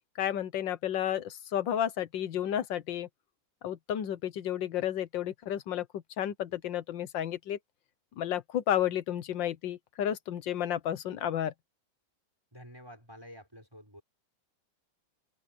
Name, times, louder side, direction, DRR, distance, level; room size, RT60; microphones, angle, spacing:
voice 1, 0.2-3.1 3.6-7.6 8.2-11.5, left 10 dB, 70° left, 1.7 m, -32 dB
voice 2, 12.5-14.0, equal, 10° right, 5.8 m, -50 dB
omnidirectional pair, 2.1 m